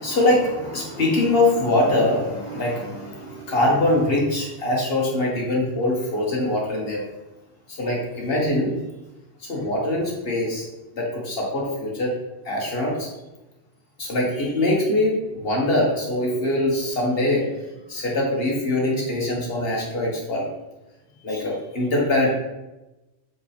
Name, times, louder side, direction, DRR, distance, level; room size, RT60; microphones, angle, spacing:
voice 1, 0.0-7.0 7.7-8.7 9.5-10.6 10.9-12.1 12.5-13.1 14.0-17.4 17.9-20.5 21.2-22.3, left 1 dB, 50° left, -3 dB, 1.8 m, -23 dB
7.4 x 4.6 x 3.4 m, 1.0 s
omnidirectional pair, 1.3 m